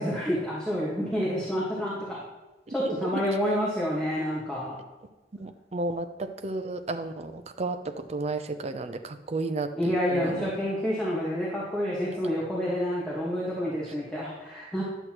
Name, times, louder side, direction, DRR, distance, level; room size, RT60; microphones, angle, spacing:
voice 1, 0.0-2.2 2.7-4.8 9.8-14.8, equal, 5° left, -7 dB, 1.5 m, -28 dB
voice 2, 2.7-3.2 5.3-10.5, right 2 dB, 35° right, 8 dB, 0.5 m, -33 dB
11.0 x 7.9 x 3.0 m, 1.1 s
head